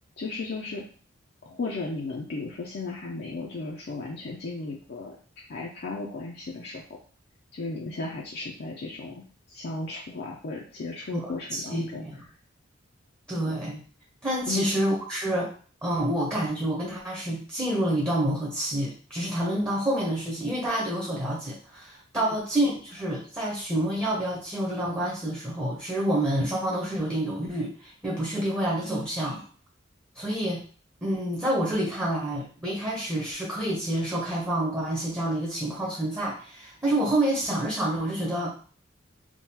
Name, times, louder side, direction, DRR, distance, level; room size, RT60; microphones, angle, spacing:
voice 1, 0.2-0.9 1.4-5.2 5.5-6.8 7.5-12.0 14.5-14.7, left 3 dB, 55° left, -2 dB, 0.5 m, -35 dB
voice 2, 11.1-12.3 13.3-13.8 14.2-15.5 15.8-29.4 30.1-30.6 31.0-38.5, right 1 dB, 15° right, -5 dB, 0.8 m, -28 dB
3.6 x 2.3 x 2.8 m, 0.41 s
head